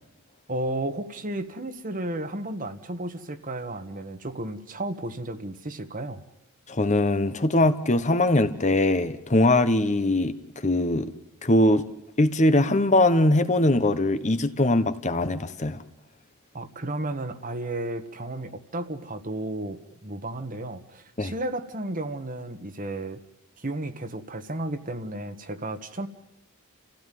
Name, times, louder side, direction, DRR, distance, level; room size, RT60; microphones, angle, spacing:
voice 1, 0.5-6.2 16.5-23.2 23.6-26.1, right 1 dB, 40° right, 9 dB, 1.5 m, -33 dB
voice 2, 6.7-10.3 10.6-11.1 11.4-11.8 12.2-15.8 21.2-21.3, left 1 dB, 35° left, 10 dB, 1.1 m, -21 dB
29.5 x 16.0 x 9.3 m, 0.97 s
head